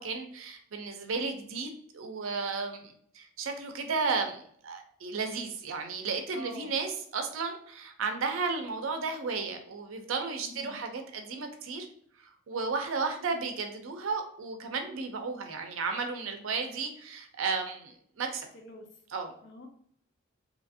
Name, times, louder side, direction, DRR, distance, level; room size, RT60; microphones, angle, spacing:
voice 1, 0.0-11.9 12.5-18.5 19.1-19.3, right 4 dB, 75° right, 5 dB, 0.5 m, -34 dB
voice 2, 6.3-6.7 10.4-10.8 18.5-18.9 19.4-19.7, equal, 55° left, 3 dB, 0.6 m, -45 dB
2.8 x 2.5 x 2.6 m, 0.63 s
head